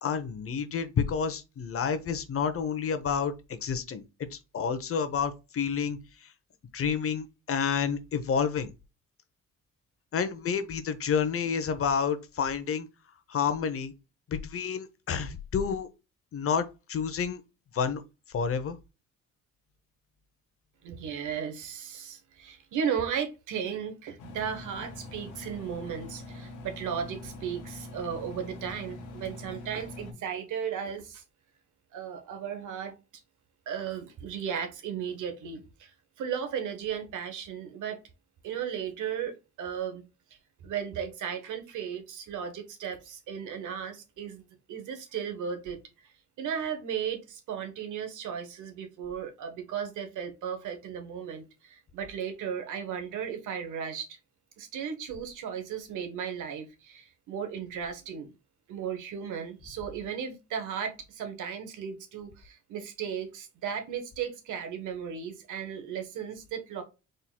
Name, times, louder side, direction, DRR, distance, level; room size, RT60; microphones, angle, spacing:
voice 1, 0.0-4.0 4.3-6.3 6.7-8.7 10.1-12.9 13.3-13.9 14.3-15.9 16.3-17.4 17.7-18.0 18.3-18.8, left 6 dB, 50° left, 0.8 m, -29 dB
voice 2, 20.8-31.2 31.9-33.0 33.7-38.0 38.4-40.1 40.6-44.4 44.7-45.8 46.4-54.1 54.6-58.3 58.7-66.8, right 7 dB, 80° right, 1.2 m, -35 dB
Engine, 24.2-30.1, left 2 dB, 80° left, 1.1 m, -43 dB
4.4 x 3.8 x 2.3 m
cardioid pair, 90°, 30 cm